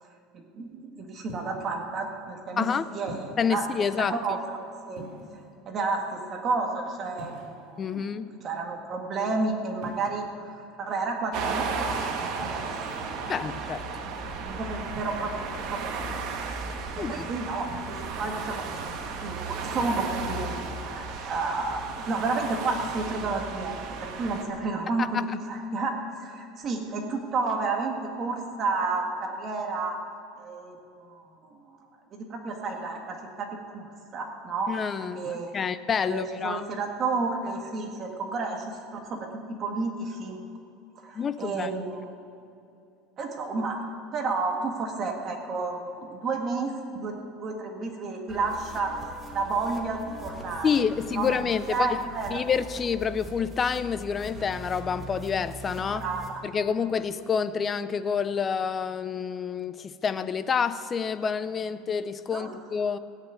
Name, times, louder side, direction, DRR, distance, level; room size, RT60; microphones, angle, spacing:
voice 1, 0.3-2.7 2.9-3.6 4.1-4.6 4.9-5.0 5.7-8.1 8.4-13.2 14.4-15.9 16.3-16.5 16.9-25.2 25.5-30.0 30.4-31.8 32.1-34.7 35.1-35.5 36.0-39.3 39.6-40.4 41.0-42.0 43.2-50.7 51.1-51.3 51.7-52.4 56.0-56.4 62.3-62.5, right 3 dB, 30° right, 2 dB, 1.7 m, -31 dB
sound 1, 1.3-1.7 3.1-3.5 4.9-5.5 7.2-7.9 9.8-10.3 12.3-12.6 14.9-15.5 17.6-18.0, right 1 dB, 65° right, 4.3 m, -44 dB
voice 2, 2.6-2.9 3.4-4.2 7.8-8.3 13.3-13.8 17.0-17.3 25.1-25.2 34.7-36.6 41.1-41.7 50.6-52.0 52.3-56.1 56.4-63.0, left 6 dB, 20° left, 13 dB, 0.5 m, -28 dB
sound 2, 11.3-24.4, right 4 dB, 45° right, 1.4 m, -34 dB
sound 3, 48.3-56.3, right 1 dB, 10° right, 1.6 m, -42 dB
16.0 x 8.4 x 9.3 m, 2.6 s
cardioid pair, 165°, 0 cm